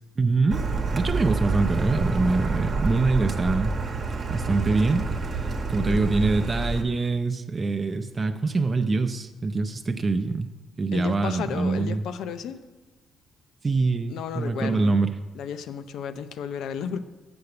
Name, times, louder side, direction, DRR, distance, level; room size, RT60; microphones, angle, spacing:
voice 1, 0.2-0.6 0.9-3.7 4.3-5.1 5.7-10.5 10.8-12.0 13.6-15.1, right 3 dB, 30° right, 6 dB, 0.5 m, -24 dB
Car, 0.5-6.8, right 3 dB, 50° right, 1.0 m, -28 dB
voice 2, 10.9-12.6 14.1-14.9 15.3-17.0, left 7 dB, 80° left, 11 dB, 0.5 m, -33 dB
7.0 x 6.7 x 6.6 m, 1.2 s
cardioid pair, 90°, 0 cm